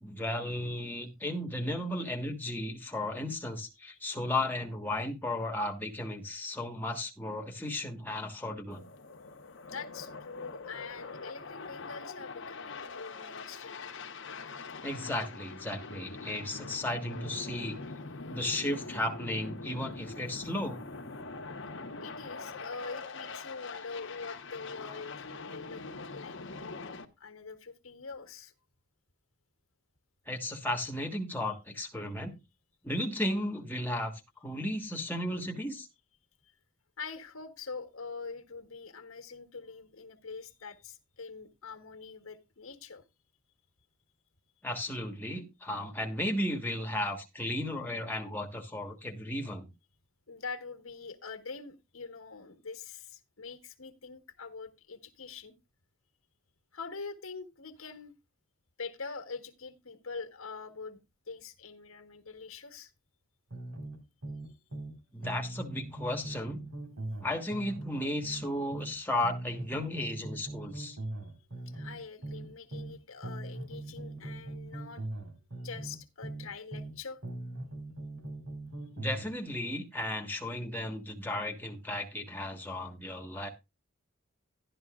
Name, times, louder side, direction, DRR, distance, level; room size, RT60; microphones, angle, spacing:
voice 1, 0.0-8.9 14.8-17.8 18.3-20.8 30.3-32.4 32.8-35.9 44.6-49.7 65.1-66.6 67.2-71.0 78.9-83.5, left 1 dB, 10° left, 1.4 m, -34 dB
sound 1, 8.7-27.0, left 3 dB, 60° left, 1.2 m, -43 dB
voice 2, 9.6-13.8 14.7-14.8 22.0-25.8 26.1-28.5 37.0-43.0 50.3-55.5 56.7-58.1 58.8-61.0 61.3-62.9 71.0-71.3 71.6-75.1 75.6-77.2, left 4 dB, 85° left, 1.4 m, -44 dB
sound 2, 63.5-65.0 65.2-68.9 69.2-72.9 73.2-76.9 77.2-79.3, right 2 dB, 90° right, 4.0 m, -40 dB
12.0 x 11.0 x 2.4 m
head